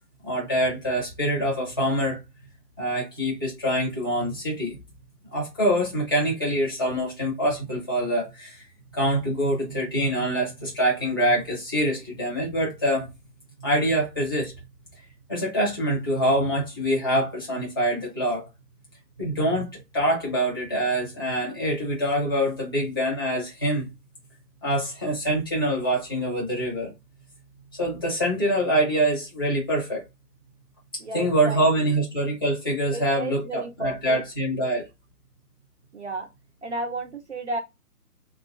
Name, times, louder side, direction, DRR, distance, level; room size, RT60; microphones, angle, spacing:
voice 1, 0.2-2.2 2.8-4.8 5.3-8.6 8.9-13.1 13.6-14.5 15.0-18.4 19.2-23.9 24.6-26.9 27.7-30.0 31.1-34.9, right 1 dB, 15° left, 0.7 m, -25 dB
voice 2, 31.0-31.6 32.9-34.2 35.9-36.3 36.6-37.6, right 2 dB, 45° right, 0.5 m, -33 dB
2.6 x 2.3 x 3.6 m
figure-of-eight pair, 160°, 47 cm